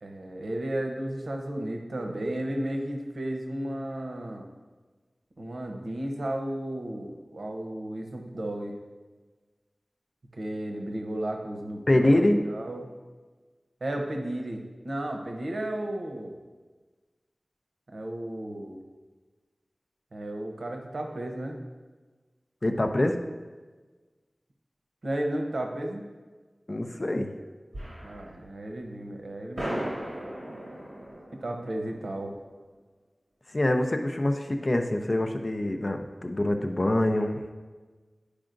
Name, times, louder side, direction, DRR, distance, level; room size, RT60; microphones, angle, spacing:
voice 1, 0.0-4.5 5.4-8.7 10.3-12.9 13.8-16.4 17.9-18.8 20.1-21.6 25.0-26.0 28.0-29.8 31.3-32.3, right 1 dB, 80° right, 2 dB, 0.8 m, -33 dB
voice 2, 11.9-12.4 22.6-23.2 26.7-27.3 33.5-37.4, left 1 dB, 45° left, 5 dB, 0.6 m, -25 dB
sound 1, 27.7-28.5 28.8-28.9 29.5-32.6, right 1 dB, 50° right, 2.0 m, -37 dB
10.5 x 4.9 x 2.6 m, 1.3 s
wide cardioid pair, 55°, 0 cm